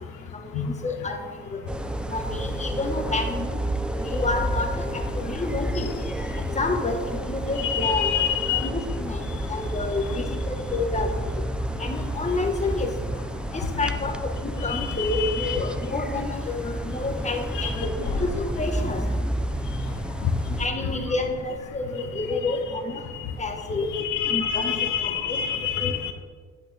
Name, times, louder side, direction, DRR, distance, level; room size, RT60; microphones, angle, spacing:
voice 1, 0.4-1.2 1.5-1.6 2.0-3.6 4.0-5.9 6.5-8.2 8.6-11.1 11.8-12.9 13.5-18.3 18.6-19.0 20.6-23.0 23.4-23.9 24.3-24.7 25.0-25.4 25.8-26.0, left 3 dB, 25° left, 4 dB, 1.3 m, -29 dB
sound 1, 1.7-20.7, right 1 dB, 5° right, 0.4 m, -30 dB
voice 2, 7.6-8.7 14.7-15.6 17.5-17.9 23.9-26.1, left 9 dB, 90° left, 7 dB, 0.8 m, -27 dB
sound 2, 17.7-22.1, left 2 dB, 65° left, 2.9 m, -39 dB
10.5 x 8.2 x 3.4 m, 1.5 s
cardioid pair, 90°, 30 cm